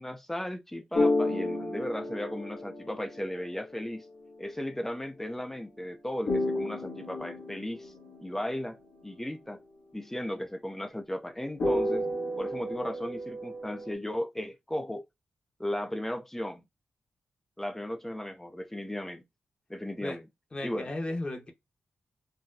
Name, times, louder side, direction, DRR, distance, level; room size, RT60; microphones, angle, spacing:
voice 1, 0.0-4.1 4.4-7.9 8.2-9.6 9.9-12.1 12.4-15.0 15.6-16.6 17.6-19.2 19.7-20.2 20.6-20.9, left 1 dB, 10° left, 0.6 m, -36 dB
sound 1, 0.9-3.8 6.3-8.5 11.6-13.9, left 1 dB, 65° left, 1.3 m, -31 dB
voice 2, 20.5-21.5, left 2 dB, 30° left, 1.0 m, -34 dB
4.0 x 2.2 x 2.7 m
cardioid pair, 75°, 3 cm